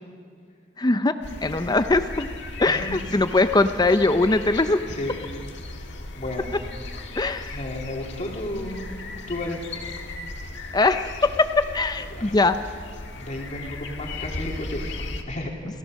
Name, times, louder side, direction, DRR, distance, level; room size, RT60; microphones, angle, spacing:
voice 1, 0.8-1.1 1.4-2.3 2.6-4.8 7.2-7.6 10.7-11.5 11.7-12.6, left 2 dB, 20° left, 10 dB, 0.6 m, -21 dB
sound 1, 1.2-15.2, left 2 dB, 65° left, 1.7 m, -36 dB
voice 2, 4.8-5.2 5.7-5.9 6.2-6.5 7.5-8.8 9.3-9.6 12.1-12.3 13.1-15.5, left 1 dB, 40° left, 0 dB, 3.0 m, -33 dB
29.5 x 14.5 x 6.4 m, 2.1 s
head